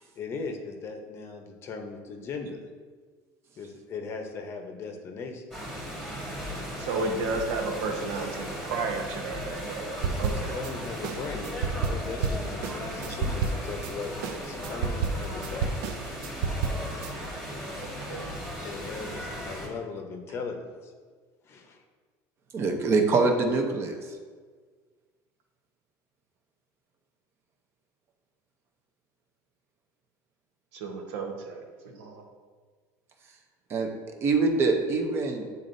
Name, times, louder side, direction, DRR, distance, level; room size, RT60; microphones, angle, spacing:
voice 1, 0.2-2.6 3.6-5.4 10.0-14.1 14.4-15.8 18.6-20.9 21.4-21.8, left 4 dB, 30° left, 4 dB, 0.7 m, -38 dB
sound 1, 5.5-19.7, equal, 5° right, 1.4 m, -37 dB
voice 2, 6.8-10.6 17.8-18.3 30.7-32.2, right 3 dB, 85° right, 3 dB, 1.0 m, -33 dB
sound 2, 10.0-10.7 11.0-13.9 14.2-17.1, right 5 dB, 65° right, 0.4 m, -30 dB
voice 3, 22.5-24.0 33.7-33.9 34.2-35.5, right 3 dB, 30° right, 4 dB, 0.7 m, -24 dB
9.0 x 4.0 x 2.6 m, 1.6 s
cardioid pair, 160°, 8 cm